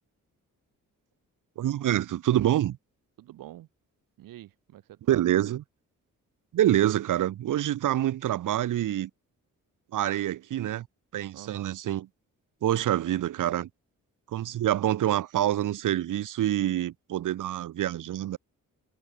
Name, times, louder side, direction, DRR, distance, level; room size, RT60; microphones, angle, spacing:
voice 1, 1.6-2.8 5.1-5.6 6.5-9.1 9.9-10.9 11.1-12.1 12.6-13.7 14.3-18.4, right 12 dB, 70° right, 0.9 m, -26 dB
voice 2, 3.2-3.7 4.2-5.2 11.3-11.8, right 14 dB, 90° right, 2.1 m, -46 dB
cardioid pair, 70°, 33 cm